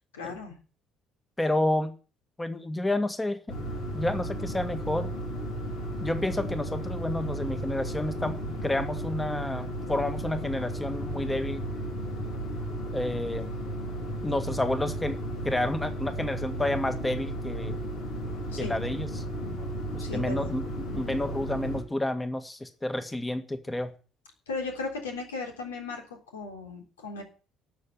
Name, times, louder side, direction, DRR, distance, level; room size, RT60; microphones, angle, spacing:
voice 1, 0.1-0.6 18.5-18.8 20.0-20.5 24.5-26.0 26.3-27.2, left 3 dB, 80° left, 3 dB, 3.4 m, -36 dB
voice 2, 1.4-2.0 2.4-3.7 3.9-5.1 6.0-11.6 12.9-13.5 14.2-15.2 15.4-17.8 18.6-19.2 19.9-23.9, left 1 dB, 15° left, 9 dB, 1.8 m, -30 dB
sound 1, 3.5-21.8, right 1 dB, 65° left, 3.9 m, -34 dB
12.5 x 7.0 x 9.5 m, 0.36 s
figure-of-eight pair, 50°, 0 cm